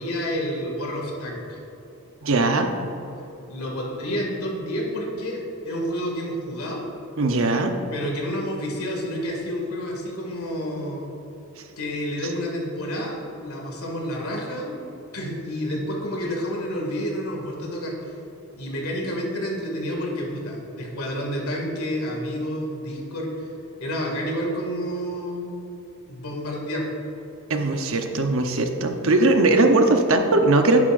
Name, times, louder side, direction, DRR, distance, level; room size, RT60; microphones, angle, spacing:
voice 1, 0.0-1.6 3.5-6.9 7.9-11.1 11.8-14.8 15.1-18.1 18.6-23.5 23.8-25.5 26.1-26.9, equal, 85° left, -1 dB, 2.1 m, -29 dB
voice 2, 2.2-2.7 7.2-7.8 27.5-30.8, right 2 dB, 65° right, 5 dB, 0.8 m, -19 dB
11.0 x 9.6 x 2.6 m, 2.9 s
head